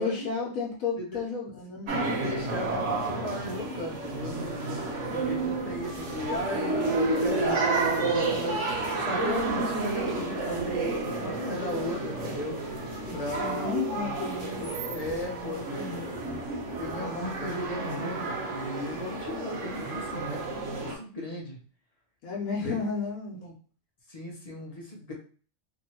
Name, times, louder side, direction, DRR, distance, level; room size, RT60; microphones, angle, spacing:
voice 1, 0.0-2.0 13.1-16.4 22.2-23.4, left 5 dB, 85° left, -3 dB, 1.2 m, -33 dB
sound 1, 1.9-20.9, right 3 dB, 60° right, 1.1 m, -31 dB
voice 2, 2.1-4.6 5.1-12.6 13.1-13.8 14.9-15.6 16.1-16.2 16.8-21.6 22.6-22.8 23.4-23.5 24.1-25.1, left 1 dB, 40° left, -1 dB, 0.5 m, -36 dB
2.9 x 2.6 x 2.8 m, 0.40 s
omnidirectional pair, 1.4 m